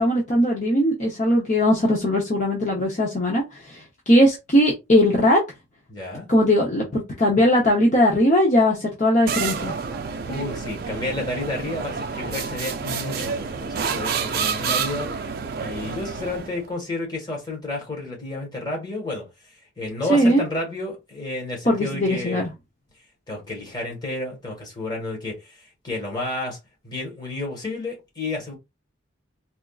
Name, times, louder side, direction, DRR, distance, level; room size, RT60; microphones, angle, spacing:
voice 1, 0.0-5.4 6.3-9.7 20.1-20.4 21.7-22.5, equal, 40° left, 0.7 m, -19 dB
voice 2, 5.9-6.2 10.3-15.1 15.5-19.3 19.8-22.5 23.3-26.6 26.8-28.5, left 2 dB, 20° left, 1.3 m, -31 dB
sound 1, 9.3-16.7, right 5 dB, 50° right, 0.4 m, -29 dB
4.2 x 2.4 x 2.3 m
head